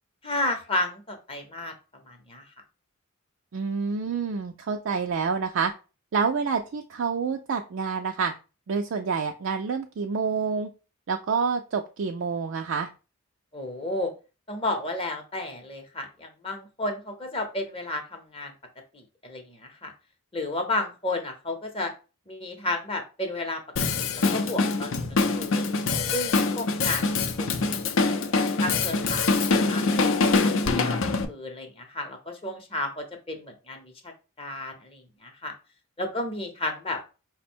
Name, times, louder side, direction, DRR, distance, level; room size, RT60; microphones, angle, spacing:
voice 1, 0.2-1.7 2.1-2.4 13.5-14.1 14.5-18.5 18.9-19.9 20.3-21.9 22.3-23.6 23.9-25.7 26.1-34.1 34.4-35.5 36.0-37.0, left 2 dB, 25° left, 4 dB, 0.7 m, -33 dB
voice 2, 3.5-5.7 6.1-8.3 8.7-10.7 11.1-12.9, right 5 dB, 60° right, 4 dB, 0.4 m, -28 dB
Drum kit, 23.8-31.3, left 3 dB, 65° left, 0.5 m, -24 dB
5.1 x 2.1 x 4.3 m, 0.32 s
head